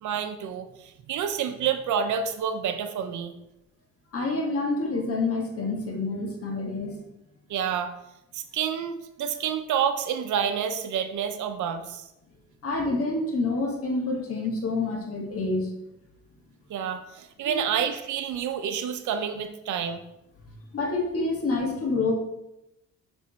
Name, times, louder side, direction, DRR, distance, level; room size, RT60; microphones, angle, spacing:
voice 1, 0.0-3.3 7.5-7.9 8.3-12.0 16.7-20.0, right 8 dB, 75° right, 9 dB, 0.7 m, -29 dB
voice 2, 4.1-7.0 12.6-15.7 17.4-17.7 20.4-22.1, left 3 dB, 50° left, 1 dB, 1.6 m, -28 dB
6.6 x 3.5 x 4.2 m, 0.88 s
cardioid pair, 90°, 30 cm